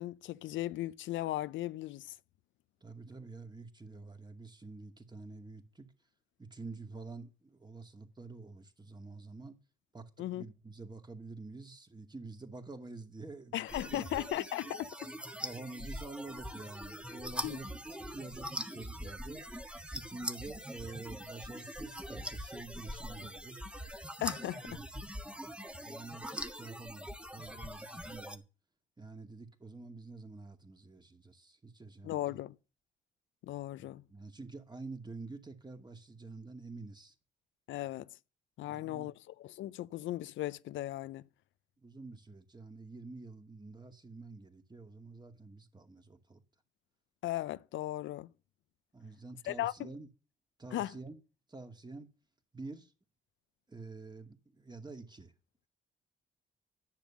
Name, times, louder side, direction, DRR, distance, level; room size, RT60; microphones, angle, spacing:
voice 1, 0.0-2.1 10.2-10.4 13.5-14.9 17.4-17.6 24.2-24.7 32.0-32.6 33.5-34.0 37.7-38.1 38.6-39.1 39.4-41.2 47.2-48.3 49.5-49.9 50.7-50.9, left 15 dB, 75° left, 0.5 m, -37 dB
voice 2, 2.8-5.9 6.4-9.5 9.9-14.0 15.4-17.7 18.0-19.4 19.9-23.6 24.4-24.8 25.3-25.4 25.8-26.3 26.5-28.4 29.0-32.4 33.8-37.1 38.6-39.1 41.8-46.4 48.9-50.1 50.6-51.2 51.5-52.1 52.5-52.9 53.7-55.3, right 3 dB, 20° right, 2.4 m, -48 dB
sound 1, 13.7-28.4, equal, 5° right, 1.5 m, -43 dB
10.5 x 7.2 x 7.2 m
supercardioid pair, 55°, 20 cm